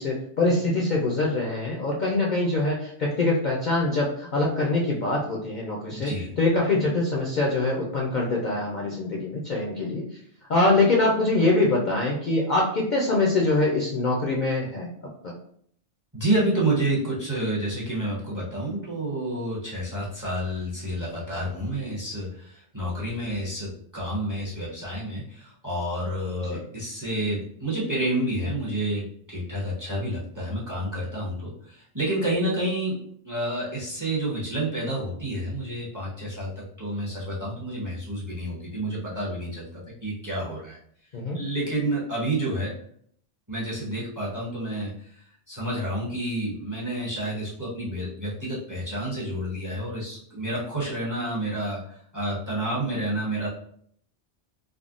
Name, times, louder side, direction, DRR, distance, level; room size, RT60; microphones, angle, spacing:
voice 1, 0.0-6.1 6.4-10.0 10.5-14.9 26.5-26.6 41.1-41.4, left 2 dB, 55° left, -3 dB, 0.6 m, -24 dB
voice 2, 5.9-6.4 16.1-33.0 33.2-39.7 40.0-40.8 41.3-42.7 43.5-53.5, right 1 dB, 20° right, -6 dB, 0.7 m, -29 dB
3.5 x 2.1 x 2.4 m, 0.62 s
omnidirectional pair, 1.2 m